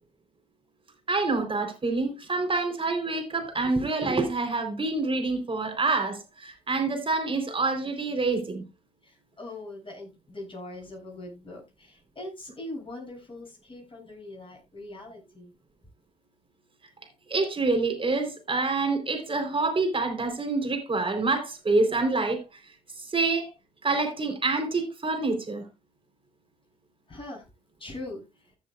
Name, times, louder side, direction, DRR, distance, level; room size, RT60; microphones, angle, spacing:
voice 1, 1.1-8.6 17.3-22.4 23.1-23.5 23.8-25.6, right 3 dB, 30° right, 4.0 m, -27 dB
voice 2, 9.0-15.5 27.1-27.4 27.8-28.2, left 2 dB, 30° left, 7.5 m, -41 dB
15.0 x 7.5 x 2.5 m
hypercardioid pair, 50°, 17 cm